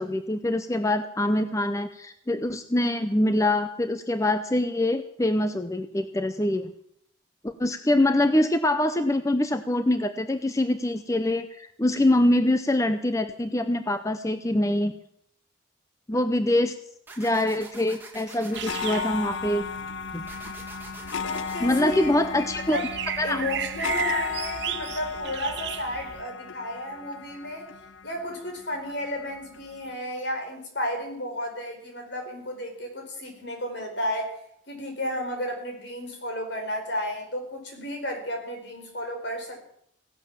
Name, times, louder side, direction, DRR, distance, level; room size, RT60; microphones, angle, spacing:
voice 1, 0.0-6.7 7.4-14.9 16.1-16.8 17.2-19.6 20.1-20.5 21.6-22.8 23.2-23.4, left 1 dB, 15° left, 9 dB, 0.6 m, -24 dB
sound 1, 17.1-18.7 20.3-21.8, right 3 dB, 10° right, 2.4 m, -45 dB
sound 2, 18.5-29.9, left 6 dB, 75° left, 0.6 m, -35 dB
sound 3, 18.5-26.2, right 9 dB, 60° right, 0.6 m, -36 dB
voice 2, 21.2-22.4 22.7-22.9 23.2-27.7 28.0-34.3 34.7-39.7, left 1 dB, 60° left, 4 dB, 4.5 m, -33 dB
16.5 x 11.5 x 7.4 m, 0.72 s
head